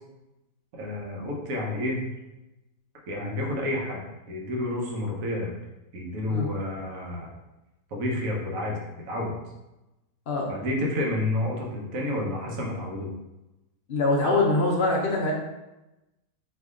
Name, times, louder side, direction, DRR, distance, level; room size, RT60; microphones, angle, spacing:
voice 1, 0.7-2.0 3.1-4.0 4.3-5.5 5.9-7.3 7.9-8.8 9.1-9.4 10.5-13.1, left 1 dB, 60° right, -1 dB, 1.2 m, -29 dB
voice 2, 13.9-15.3, left 2 dB, 80° left, -2 dB, 0.5 m, -23 dB
4.3 x 2.8 x 3.6 m, 1.0 s
omnidirectional pair, 1.8 m